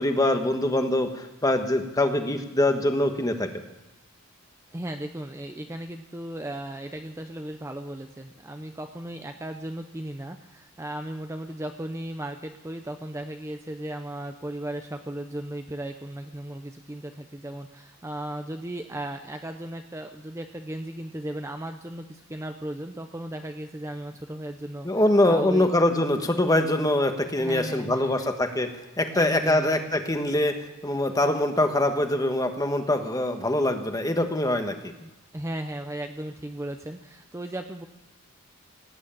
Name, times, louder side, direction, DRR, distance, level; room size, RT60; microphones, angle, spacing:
voice 1, 0.0-3.5 24.8-28.7 29.0-30.5 30.8-34.9, left 1 dB, 15° left, 6 dB, 1.3 m, -23 dB
voice 2, 4.7-25.7 27.4-28.3 29.1-29.7 35.0-37.9, right 1 dB, 15° right, 6 dB, 0.6 m, -36 dB
17.5 x 9.3 x 8.9 m, 1.1 s
head